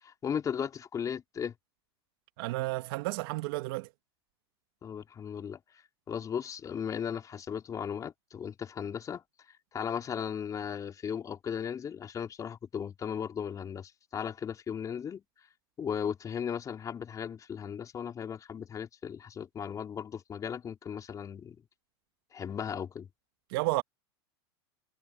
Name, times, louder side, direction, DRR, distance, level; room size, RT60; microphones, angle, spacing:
voice 1, 0.0-1.5 4.8-5.6 6.1-9.2 9.7-15.2 15.8-21.6 22.3-23.1, left 7 dB, 25° left, 4.0 m, -36 dB
voice 2, 2.4-3.9 23.5-23.8, right 20 dB, 60° right, 2.1 m, -31 dB
hypercardioid pair, 120°, 14 cm